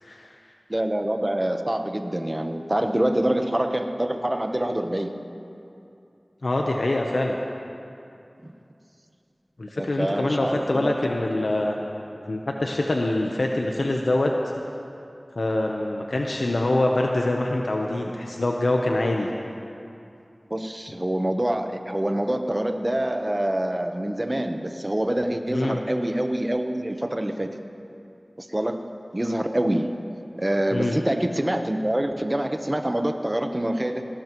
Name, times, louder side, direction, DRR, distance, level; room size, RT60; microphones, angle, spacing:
voice 1, 0.0-0.3 6.4-7.4 9.6-11.8 12.3-14.3 15.3-19.3 25.5-25.8 30.7-30.9, left 2 dB, 85° left, 0 dB, 0.9 m, -24 dB
voice 2, 0.7-5.1 8.4-8.5 9.8-11.0 20.5-27.5 28.4-28.9 29.1-29.9 30.4-34.0, right 1 dB, 30° right, 6 dB, 1.0 m, -26 dB
18.0 x 18.0 x 3.1 m, 2.6 s
wide cardioid pair, 45°, 0 cm